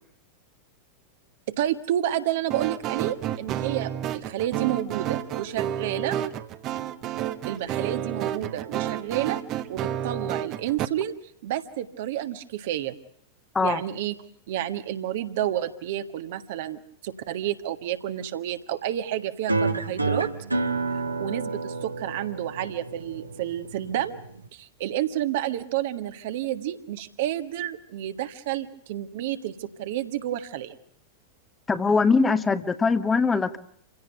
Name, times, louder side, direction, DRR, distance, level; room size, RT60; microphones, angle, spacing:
voice 1, 1.5-6.2 7.5-9.4 9.7-11.1 11.4-12.9 13.6-14.1 14.5-20.3 21.2-24.2 24.5-30.7, right 12 dB, 55° right, 9 dB, 1.6 m, -30 dB
sound 1, 2.5-10.9, right 11 dB, 35° right, 1.3 m, -30 dB
sound 2, 19.5-24.5, right 3 dB, 80° right, 1.5 m, -29 dB
voice 2, 31.7-33.6, left 4 dB, 15° left, 13 dB, 1.3 m, -22 dB
27.5 x 17.0 x 8.0 m, 0.68 s
figure-of-eight pair, 90°, 0 cm